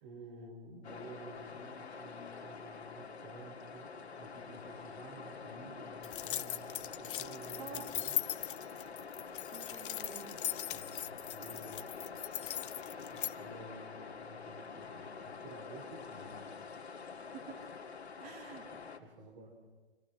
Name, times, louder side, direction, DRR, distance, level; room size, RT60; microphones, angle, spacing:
voice 1, 0.0-8.5 10.7-11.9 13.1-16.5 18.7-19.5, right 2 dB, 45° right, 2 dB, 3.4 m, -52 dB
sound 1, 0.8-19.0, left 5 dB, 85° left, 2.1 m, -47 dB
sound 2, 6.0-13.3, left 12 dB, 55° left, 0.7 m, -39 dB
voice 2, 9.5-10.4 17.3-17.7 18.2-18.7, right 7 dB, 25° right, 3 dB, 2.7 m, -49 dB
25.5 x 17.5 x 6.3 m, 1.3 s
hypercardioid pair, 135°, 32 cm